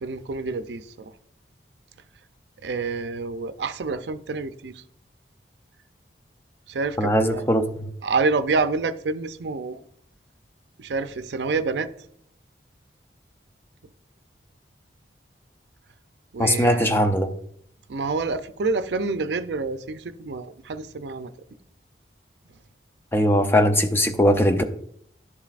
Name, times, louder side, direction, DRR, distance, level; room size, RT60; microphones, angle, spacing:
voice 1, 0.0-1.1 2.6-4.8 6.7-7.4 8.0-9.8 10.8-11.9 16.3-16.9 17.9-21.3, right 3 dB, 80° right, 0.5 m, -27 dB
voice 2, 7.0-7.9 16.4-17.3 23.1-24.6, equal, 15° left, 0.5 m, -20 dB
11.0 x 7.3 x 2.4 m
head